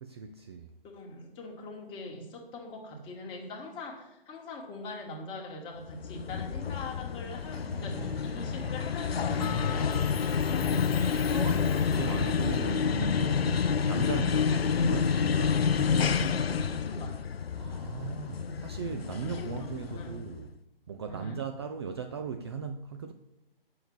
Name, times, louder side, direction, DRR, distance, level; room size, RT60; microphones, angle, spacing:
voice 1, 0.0-0.7 11.4-15.6 17.6-20.6 20.9-23.1, right 5 dB, 30° right, 0.4 m, -37 dB
voice 2, 0.8-11.1 16.4-17.2 18.4-18.7 19.2-20.2 21.1-21.5, left 2 dB, 15° left, 1.8 m, -43 dB
sound 1, 5.9-20.4, left 6 dB, 90° left, 0.5 m, -29 dB
sound 2, 7.4-16.4, equal, 70° right, 3.3 m, -39 dB
Bell, 9.4-12.2, left 7 dB, 40° left, 1.0 m, -39 dB
9.0 x 6.6 x 7.0 m
figure-of-eight pair, 135°, 29 cm